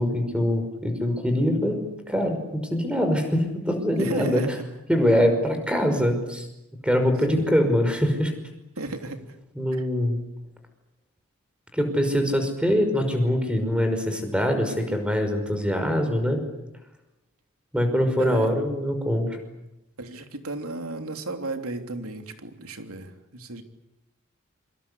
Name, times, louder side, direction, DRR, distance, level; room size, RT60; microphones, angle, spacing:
voice 1, 0.0-4.4 4.9-6.5 6.8-8.3 9.6-10.2 11.7-16.4 17.7-19.4, equal, 5° right, 6 dB, 5.5 m, -23 dB
voice 2, 4.0-4.6 7.3-7.5 8.8-9.2 18.2-18.5 20.0-23.6, right 2 dB, 80° right, 6 dB, 3.2 m, -34 dB
27.5 x 25.0 x 8.4 m, 0.90 s
head